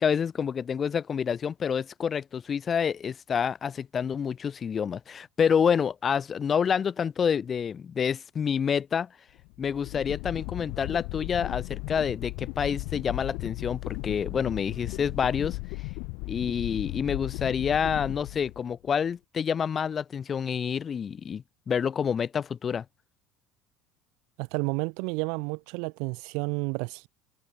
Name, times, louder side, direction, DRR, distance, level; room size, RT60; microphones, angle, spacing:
voice 1, 0.0-9.1 9.6-15.6 16.3-22.8, left 7 dB, 35° left, 0.8 m, -28 dB
sound 1, 9.4-18.9, left 31 dB, 65° left, 1.8 m, -36 dB
voice 2, 24.4-27.1, right 34 dB, 65° right, 1.3 m, -31 dB
hypercardioid pair, 70°, 0 cm